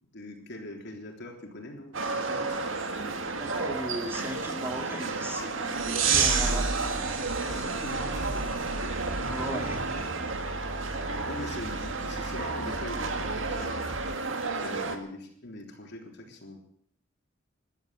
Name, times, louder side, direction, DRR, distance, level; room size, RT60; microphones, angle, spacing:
voice 1, 0.1-2.5 6.3-6.6 7.5-8.5 9.4-9.8 11.2-14.1 14.6-16.6, left 1 dB, 60° left, 2 dB, 3.5 m, -42 dB
sound 1, 1.9-15.0, right 3 dB, 75° right, 1.9 m, -33 dB
voice 2, 3.3-6.7 9.3-10.0, right 1 dB, 10° right, 3 dB, 2.3 m, -37 dB
sound 2, 5.7-10.2, right 5 dB, 90° right, 2.2 m, -30 dB
sound 3, 8.9-14.2, right 1 dB, 55° right, 1.5 m, -41 dB
14.5 x 12.0 x 8.1 m, 0.68 s
head